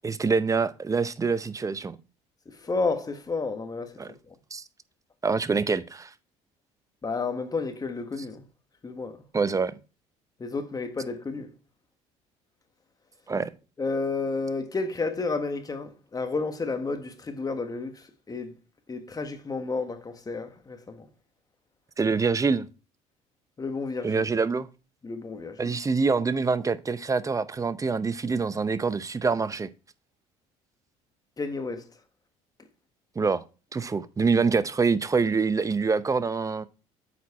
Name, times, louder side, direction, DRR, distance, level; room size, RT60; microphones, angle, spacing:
voice 1, 0.0-2.0 4.0-4.1 4.5-4.6 5.2-6.1 9.3-9.7 13.3-13.5 22.0-22.7 24.0-24.7 25.6-29.7 33.2-33.4 33.7-36.7, right 4 dB, 20° right, 0.7 m, -25 dB
voice 2, 2.4-4.0 4.3-4.4 7.0-8.5 8.8-9.3 10.4-11.5 13.8-18.5 18.9-21.1 23.6-24.3 25.0-25.8 31.4-31.9, left 4 dB, 25° left, 1.4 m, -31 dB
8.2 x 4.6 x 4.2 m
supercardioid pair, 75°, 16 cm